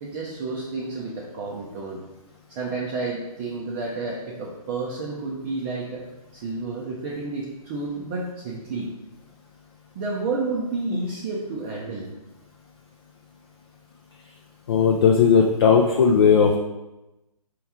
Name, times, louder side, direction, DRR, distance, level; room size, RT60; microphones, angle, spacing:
voice 1, 0.0-2.0 2.5-8.9 9.9-12.1, right 3 dB, 20° right, -5 dB, 0.5 m, -30 dB
voice 2, 14.7-16.6, left 6 dB, 40° left, 1 dB, 0.4 m, -17 dB
4.4 x 3.0 x 3.5 m, 0.98 s
hypercardioid pair, 145°, 20 cm